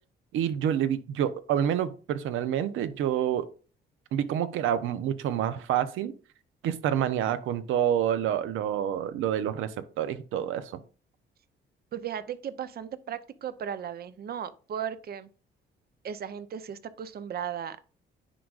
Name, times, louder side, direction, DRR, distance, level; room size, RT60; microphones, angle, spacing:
voice 1, 0.3-3.5 4.1-6.1 6.6-10.8, right 10 dB, 85° right, 0.7 m, -28 dB
voice 2, 11.9-15.3 16.0-17.8, right 8 dB, 50° right, 0.7 m, -36 dB
9.9 x 4.8 x 2.5 m
cardioid pair, 90°, 20 cm